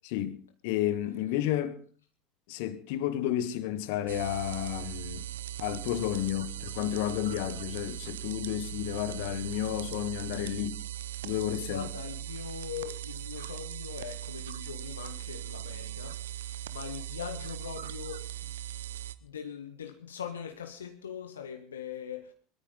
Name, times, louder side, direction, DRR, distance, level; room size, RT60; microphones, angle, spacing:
voice 1, 0.0-0.4 0.6-1.7 2.5-5.3 5.6-10.8 11.2-11.9, left 12 dB, 65° left, 1.3 m, -31 dB
sound 1, 4.1-19.1, right 12 dB, 75° right, 0.7 m, -39 dB
voice 2, 11.7-18.5 19.2-22.3, left 8 dB, 80° left, 1.0 m, -41 dB
21.0 x 13.5 x 3.9 m
figure-of-eight pair, 75°, 0 cm